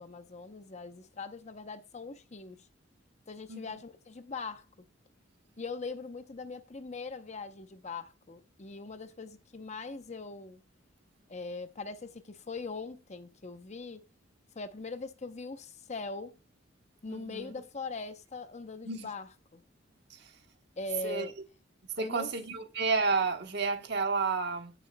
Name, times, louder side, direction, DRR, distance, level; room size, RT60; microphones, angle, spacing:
voice 1, 0.0-2.6 3.3-4.7 5.6-10.6 11.3-14.0 14.6-16.3 17.0-19.6 20.8-21.3 22.0-22.3, left 3 dB, 35° left, 0.7 m, -41 dB
voice 2, 17.1-17.4 18.8-19.1 20.1-20.3 21.0-21.3 22.0-24.7, right 4 dB, 60° right, 1.2 m, -31 dB
15.5 x 6.6 x 2.2 m
head